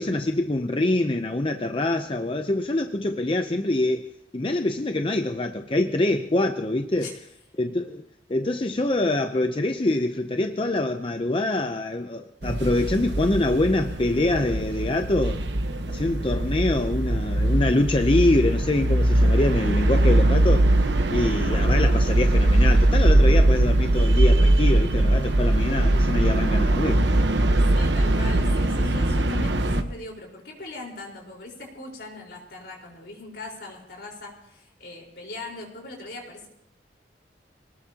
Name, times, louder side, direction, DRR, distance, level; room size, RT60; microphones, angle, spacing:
voice 1, 0.0-7.2 7.6-8.0 8.3-15.5 15.9-20.7 21.1-27.0, left 2 dB, 30° left, 6 dB, 0.6 m, -25 dB
sound 1, 12.4-29.8, right 1 dB, 85° right, 1.2 m, -21 dB
voice 2, 27.7-36.5, left 2 dB, 70° left, -1 dB, 4.5 m, -40 dB
24.0 x 19.0 x 2.9 m, 0.79 s
head